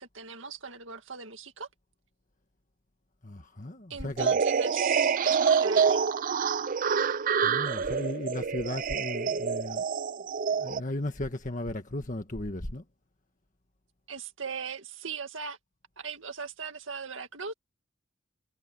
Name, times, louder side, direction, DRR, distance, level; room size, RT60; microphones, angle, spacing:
voice 1, 0.0-1.7 3.9-6.0 14.1-15.6 16.0-17.5, right 5 dB, 70° right, 2.0 m, -39 dB
voice 2, 3.2-4.4 7.4-9.8 10.6-12.8, left 1 dB, 40° left, 1.6 m, -35 dB
sound 1, 4.2-10.8, right 6 dB, 40° right, 0.4 m, -27 dB
head